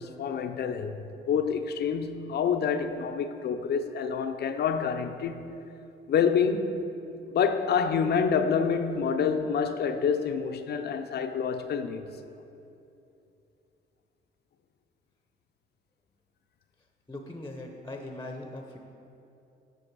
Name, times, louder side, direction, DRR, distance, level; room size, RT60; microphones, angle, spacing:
voice 1, 0.0-5.6 6.1-6.8 7.3-12.2, left 6 dB, 55° left, 0.5 m, -27 dB
voice 2, 17.1-18.8, left 2 dB, 15° left, 0.7 m, -40 dB
7.8 x 5.9 x 4.6 m
cardioid pair, 90°, 20 cm